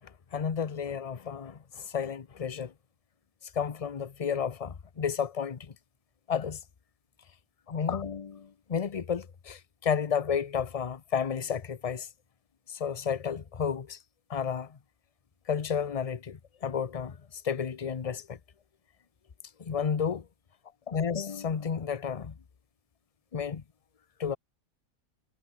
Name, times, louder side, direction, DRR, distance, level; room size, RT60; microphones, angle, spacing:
voice 1, 0.3-2.7 3.5-5.7 6.3-6.6 7.7-12.1 12.7-14.0 14.3-14.8 15.5-18.4 19.6-20.2 20.9-22.3 23.3-23.6 24.2-24.4, left 7 dB, 35° left, 0.6 m, -32 dB
omnidirectional pair, 1.6 m